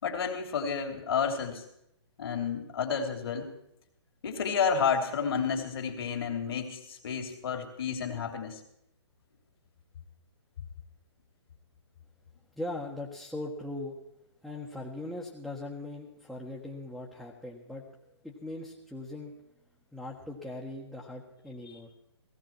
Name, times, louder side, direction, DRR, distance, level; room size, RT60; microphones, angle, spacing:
voice 1, 0.0-1.6 2.2-3.5 4.2-8.6, left 6 dB, 55° left, 4 dB, 2.9 m, -31 dB
voice 2, 12.5-14.0 14.4-17.9 18.2-19.3 19.9-21.9, left 2 dB, ahead, -3 dB, 1.5 m, -40 dB
17.0 x 15.5 x 4.5 m, 0.79 s
figure-of-eight pair, 135°, 15 cm